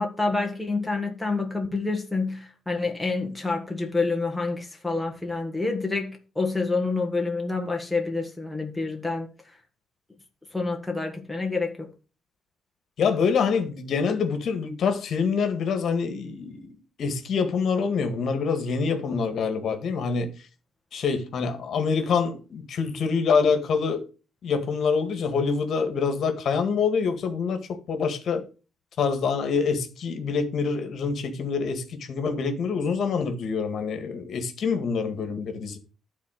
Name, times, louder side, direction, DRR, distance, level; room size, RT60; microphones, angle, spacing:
voice 1, 0.0-9.3 10.5-11.9, left 3 dB, 5° left, 1.4 m, -28 dB
voice 2, 13.0-16.7 17.0-20.3 20.9-24.0 24.4-28.4 29.0-35.8, left 5 dB, 55° left, 1.9 m, -26 dB
12.0 x 4.2 x 6.5 m
cardioid pair, 140°, 0 cm